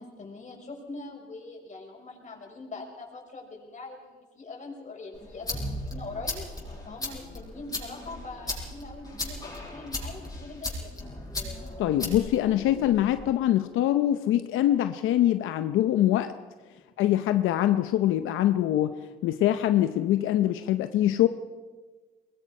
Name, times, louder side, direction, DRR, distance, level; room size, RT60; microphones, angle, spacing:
voice 1, 0.0-6.4 6.8-11.0, left 3 dB, 35° left, 0 dB, 6.2 m, -42 dB
sound 1, 5.1-13.2, left 2 dB, 20° left, 7.3 m, -37 dB
voice 2, 11.8-16.3 17.0-19.0 19.2-21.3, left 12 dB, 90° left, 10 dB, 0.7 m, -24 dB
23.0 x 20.5 x 5.5 m, 1.3 s
cardioid pair, 90°, 20 cm